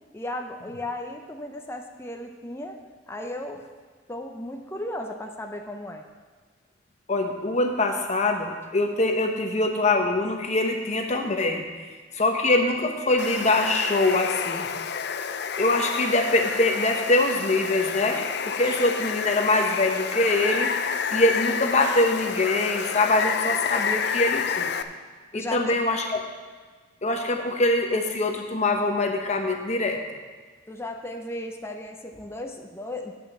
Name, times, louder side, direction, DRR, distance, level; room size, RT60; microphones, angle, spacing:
voice 1, 0.1-2.8 3.1-3.7 4.1-6.0 25.3-25.8 27.4-27.5 30.7-33.1, left 1 dB, 15° left, 3 dB, 0.6 m, -35 dB
voice 2, 7.1-11.7 12.1-14.7 15.6-20.7 21.1-24.7 25.3-26.0 27.0-30.0, left 2 dB, 35° left, 3 dB, 1.0 m, -23 dB
Water, 13.2-24.8, left 6 dB, 60° left, 0.5 m, -29 dB
8.6 x 5.8 x 7.2 m, 1.4 s
head